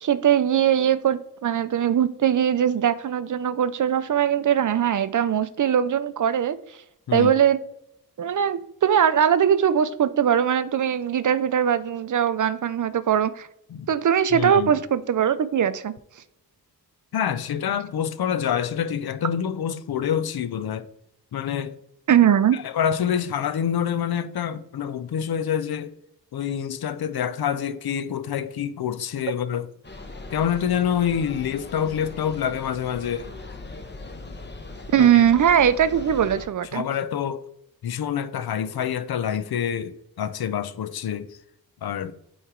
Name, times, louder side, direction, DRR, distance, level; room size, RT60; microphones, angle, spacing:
voice 1, 0.0-6.6 7.1-7.6 8.2-13.5 13.9-15.9 22.1-22.6 34.9-36.9, right 9 dB, 55° right, 0.5 m, -21 dB
voice 2, 14.3-14.7 17.1-20.9 21.3-21.8 22.5-25.9 26.3-29.7 30.3-33.3 35.0-35.2 36.7-37.4 37.8-41.4 41.8-42.1, left 8 dB, 75° left, 0.6 m, -27 dB
sound 1, 29.8-36.5, left 2 dB, 30° left, 0.9 m, -40 dB
8.6 x 3.2 x 3.7 m
wide cardioid pair, 80°, 38 cm